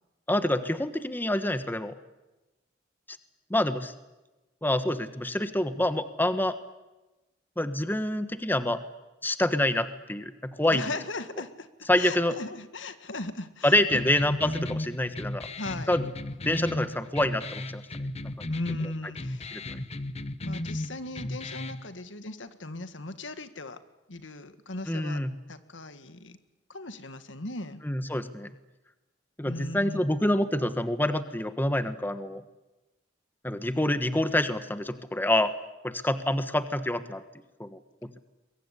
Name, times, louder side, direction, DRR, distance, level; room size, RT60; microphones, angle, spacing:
voice 1, 0.3-2.0 3.1-3.2 3.5-3.9 4.6-6.6 7.6-8.8 9.2-10.9 11.9-12.4 13.6-15.5 15.9-16.0 16.4-18.5 19.5-19.8 24.9-25.3 27.8-28.5 29.4-32.4 33.4-35.5 35.8-37.2 37.6-37.8, left 1 dB, 10° left, 10 dB, 1.3 m, -27 dB
voice 2, 10.7-13.8 15.6-15.9 18.5-19.6 20.4-23.8 24.1-25.2 25.5-26.4 26.7-27.8 29.5-30.1, left 2 dB, 90° left, 10 dB, 1.7 m, -38 dB
sound 1, 13.9-21.9, left 1 dB, 35° left, 1.0 m, -35 dB
22.5 x 22.0 x 9.9 m, 1.0 s
head